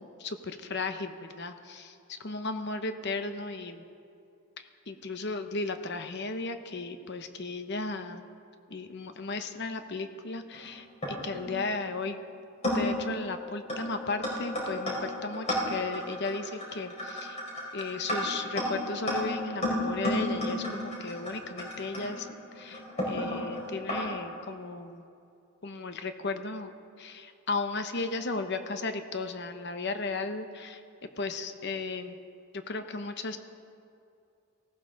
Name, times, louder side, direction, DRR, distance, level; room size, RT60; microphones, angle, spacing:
voice 1, 0.0-3.8 4.9-8.2 8.7-12.2 12.7-17.4 17.7-22.3 22.5-25.0 25.6-26.7 27.0-30.8 31.2-32.2 32.5-33.4, left 3 dB, 50° left, 8 dB, 0.9 m, -35 dB
sound 1, 10.5-11.5 12.2-12.3 12.6-13.0 13.7-13.9 14.2-24.0, left 1 dB, 30° left, 4.7 m, -32 dB
18.5 x 16.5 x 4.0 m, 2.5 s
head